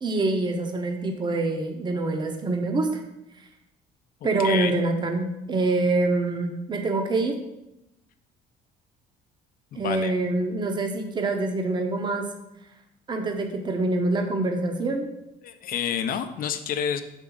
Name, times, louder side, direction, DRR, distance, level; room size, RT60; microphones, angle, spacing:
voice 1, 0.0-2.9 4.2-7.4 9.8-12.3 13.1-15.1, right 2 dB, 25° right, 4 dB, 0.8 m, -25 dB
voice 2, 4.4-4.7 9.7-10.1 15.4-17.0, left 8 dB, 60° left, 9 dB, 0.6 m, -29 dB
6.0 x 4.5 x 3.8 m, 0.90 s
cardioid pair, 110°, 17 cm